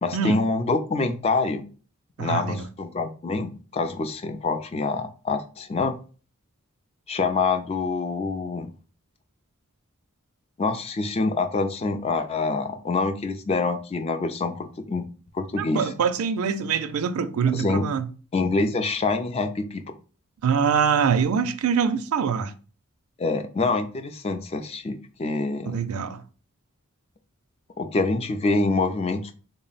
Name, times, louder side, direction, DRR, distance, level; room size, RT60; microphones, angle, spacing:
voice 1, 0.0-1.6 2.2-6.0 7.1-8.7 10.6-15.0 15.3-15.9 17.5-17.9 18.3-19.8 23.2-25.8 27.8-29.3, left 3 dB, 30° left, 0.3 m, -26 dB
voice 2, 2.2-2.7 15.6-18.1 20.4-22.5 25.6-26.2, right 6 dB, 90° right, 0.4 m, -24 dB
3.6 x 2.0 x 3.9 m
head